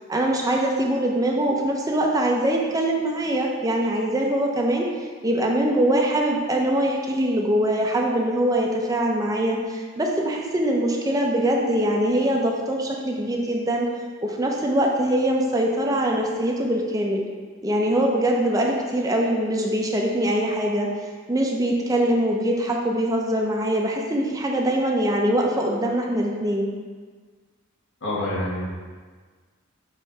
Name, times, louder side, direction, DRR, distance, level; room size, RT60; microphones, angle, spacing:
voice 1, 0.1-4.9 5.2-13.9 14.2-17.2 17.6-20.9 21.3-26.7, right 1 dB, 15° right, 0 dB, 0.6 m, -23 dB
voice 2, 28.0-28.7, left 1 dB, 75° left, -7 dB, 1.9 m, -27 dB
6.4 x 3.2 x 5.6 m, 1.5 s
head